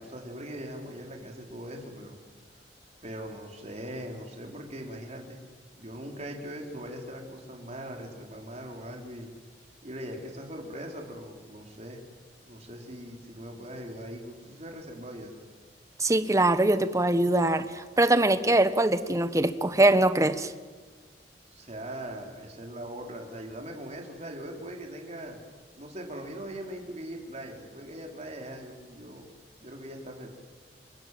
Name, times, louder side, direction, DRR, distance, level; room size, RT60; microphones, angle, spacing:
voice 1, 0.0-2.2 2.5-2.6 3.0-5.4 5.8-9.3 9.8-12.0 12.5-15.3 21.5-25.4 25.7-29.3 29.6-30.3, right 1 dB, 40° right, 1 dB, 4.3 m, -40 dB
voice 2, 16.0-20.5, right 2 dB, 20° right, 11 dB, 1.2 m, -23 dB
28.0 x 24.0 x 7.7 m, 1.4 s
head